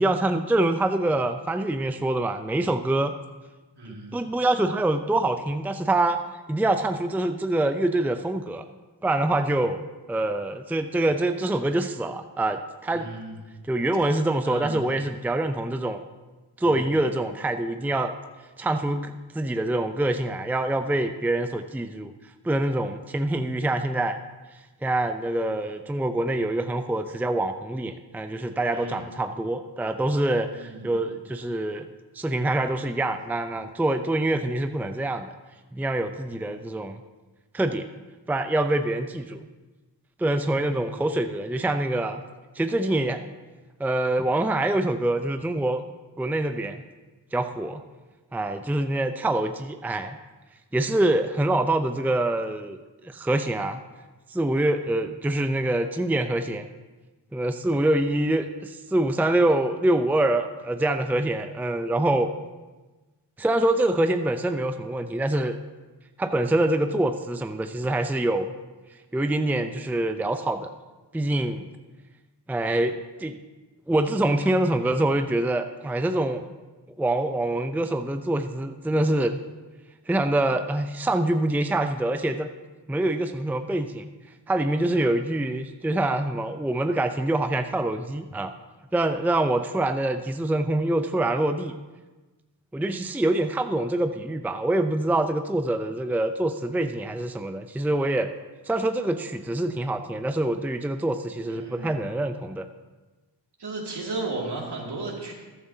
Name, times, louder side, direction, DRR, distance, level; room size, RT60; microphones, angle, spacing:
voice 1, 0.0-3.1 4.1-6.2 6.5-8.6 9.0-9.8 10.1-13.1 13.7-16.0 16.6-18.1 18.6-22.1 22.4-24.2 24.8-31.9 32.2-35.3 35.7-37.0 37.5-37.8 38.3-39.5 40.2-42.2 42.6-43.2 43.8-45.8 46.2-46.8 47.3-47.8 48.3-50.2 50.7-52.8 53.0-53.8 54.3-56.7 57.3-62.3 63.4-65.6 66.2-68.5 69.1-70.7 71.1-71.7 72.5-73.3 73.9-76.4 77.0-79.4 80.1-82.5 82.9-84.1 84.5-88.5 88.9-91.7 92.7-98.3 98.7-102.7, right 1 dB, 5° right, 8 dB, 0.5 m, -25 dB
voice 2, 3.8-4.3 12.9-13.4 14.4-14.8 16.6-17.0 28.7-29.2 30.5-31.0 40.5-40.9 101.5-102.0 103.6-105.3, right 2 dB, 70° right, -2 dB, 2.5 m, -35 dB
14.0 x 11.0 x 2.8 m, 1.2 s
cardioid pair, 55°, 42 cm